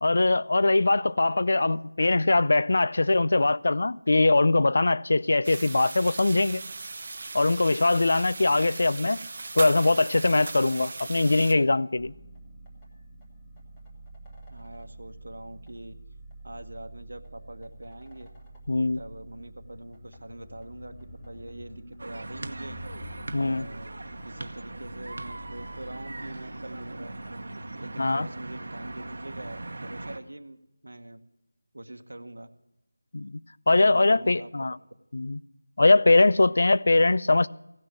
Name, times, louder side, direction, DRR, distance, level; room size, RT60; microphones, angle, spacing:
voice 1, 0.0-6.6 7.3-9.2 9.6-12.1 18.7-19.0 23.3-23.7 28.0-28.3 33.1-33.4 33.7-34.8 35.1-35.4 35.8-37.5, left 2 dB, 45° left, 0.4 m, -22 dB
sound 1, 5.4-11.5, right 3 dB, 30° right, 0.7 m, -38 dB
sound 2, 12.0-27.3, right 1 dB, 10° left, 1.3 m, -47 dB
voice 2, 14.5-15.9 16.4-18.3 18.9-22.8 23.4-23.9 24.2-27.1 27.8-30.6 30.8-31.2 31.7-32.5 33.7-34.5, right 1 dB, 80° right, 1.1 m, -43 dB
sound 3, 22.0-30.2, right 2 dB, 50° right, 1.0 m, -39 dB
16.0 x 6.4 x 9.9 m
figure-of-eight pair, 175°, 0 cm